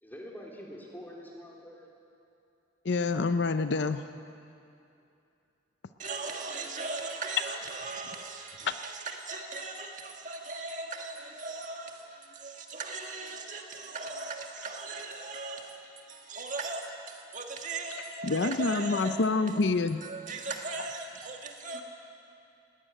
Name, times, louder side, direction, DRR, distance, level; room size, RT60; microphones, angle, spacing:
voice 1, 0.0-1.9, equal, 10° left, -2 dB, 3.1 m, -45 dB
voice 2, 2.8-4.0 8.6-8.7 18.3-20.0, left 3 dB, 60° left, 10 dB, 0.6 m, -27 dB
voice 3, 6.0-21.8, right 3 dB, 40° right, 2 dB, 1.8 m, -39 dB
20.0 x 17.5 x 9.1 m, 2.6 s
head